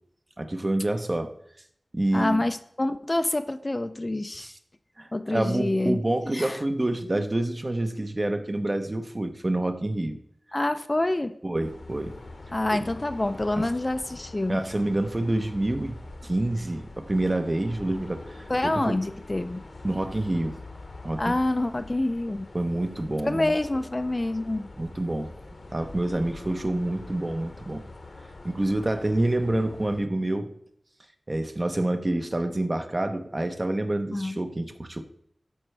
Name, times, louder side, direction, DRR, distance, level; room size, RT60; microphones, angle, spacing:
voice 1, 0.4-1.3 1.9-2.4 4.4-4.5 5.0-10.2 11.4-12.1 12.7-12.9 13.5-13.7 14.5-18.9 19.8-20.6 21.0-21.4 22.5-23.6 24.8-25.3 25.7-27.8 28.4-30.5 31.3-35.0, right 1 dB, 35° right, 7 dB, 0.7 m, -27 dB
voice 2, 2.1-4.5 5.1-6.0 6.3-6.6 10.5-11.4 12.5-14.6 18.5-19.6 21.2-22.5 23.2-24.7 34.1-34.4, left 2 dB, 30° left, 10 dB, 0.4 m, -27 dB
sound 1, 11.6-30.0, left 2 dB, 65° left, 0.9 m, -44 dB
12.5 x 4.4 x 3.3 m, 0.69 s
wide cardioid pair, 70°, 0 cm